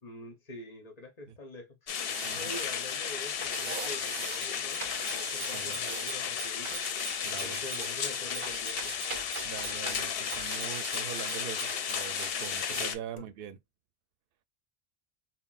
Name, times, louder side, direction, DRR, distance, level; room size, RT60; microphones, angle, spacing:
voice 1, 0.0-1.8 2.0-6.8 7.2-8.9 12.7-13.2, left 1 dB, 45° left, 0.9 m, -46 dB
sound 1, 1.9-12.9, left 8 dB, 75° left, 0.8 m, -34 dB
sound 2, 2.0-2.8 3.4-4.4 4.8-6.2 6.6-7.9 8.4-10.0 10.3-12.9 13.2-13.3, right 4 dB, 40° right, 0.6 m, -42 dB
voice 2, 2.2-2.5 5.5-5.8 7.2-7.6 9.4-13.6, right 9 dB, 70° right, 0.7 m, -43 dB
Bicycle bell, 4.0-12.1, right 2 dB, 5° left, 0.7 m, -46 dB
5.7 x 2.1 x 2.3 m
omnidirectional pair, 1.0 m